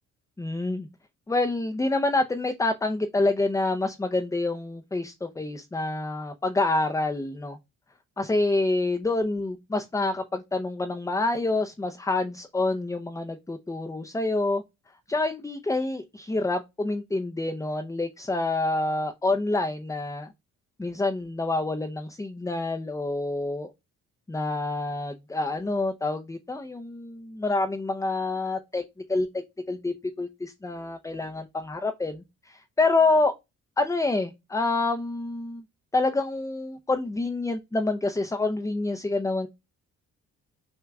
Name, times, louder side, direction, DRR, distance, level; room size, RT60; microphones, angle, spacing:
voice 1, 0.4-0.9 1.3-7.6 8.2-14.6 15.1-20.3 20.8-23.7 24.3-28.8 29.1-33.4 33.8-35.6 35.9-39.5, left 2 dB, 10° left, 0.6 m, -27 dB
6.3 x 2.4 x 3.4 m
cardioid pair, 90°, 30 cm